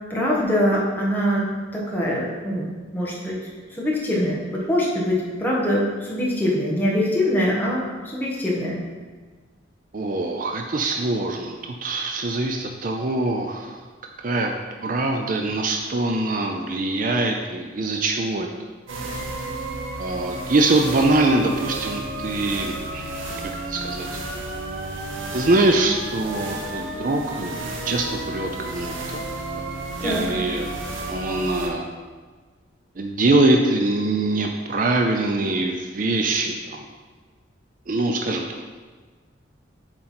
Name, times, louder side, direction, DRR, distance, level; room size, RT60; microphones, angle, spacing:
voice 1, 0.1-1.4 1.7-3.4 3.7-8.8 30.0-30.3, equal, 10° left, -5 dB, 1.3 m, -23 dB
voice 2, 9.9-13.8 14.2-14.5 14.8-18.5 20.0-23.2 23.7-24.2 25.3-29.3 29.6-29.7 30.0-30.8 31.1-31.9 33.0-36.9 37.9-38.6, right 2 dB, 45° right, 3 dB, 0.5 m, -23 dB
sound 1, 18.9-31.7, right 2 dB, 90° right, 0.9 m, -32 dB
7.6 x 4.5 x 4.3 m, 1.4 s
head